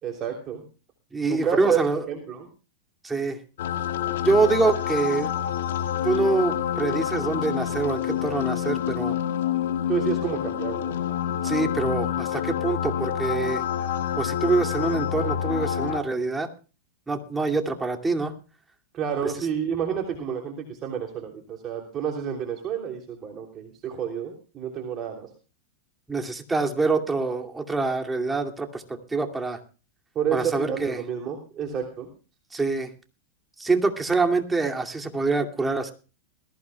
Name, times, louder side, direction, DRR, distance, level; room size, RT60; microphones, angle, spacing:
voice 1, 0.0-0.6 1.3-2.5 9.9-11.0 18.9-25.3 30.1-32.1, right 8 dB, 35° right, 2 dB, 3.1 m, -29 dB
voice 2, 1.1-2.0 3.0-3.4 4.2-5.3 6.0-9.2 11.4-13.6 14.2-16.5 17.1-18.3 19.2-19.3 26.1-29.6 30.3-31.0 32.5-32.9 33.6-35.9, right 3 dB, 10° right, 4 dB, 2.4 m, -25 dB
sound 1, 3.6-16.0, left 10 dB, 70° left, 1.9 m, -27 dB
21.0 x 15.5 x 2.3 m, 0.35 s
hypercardioid pair, 105°, 0 cm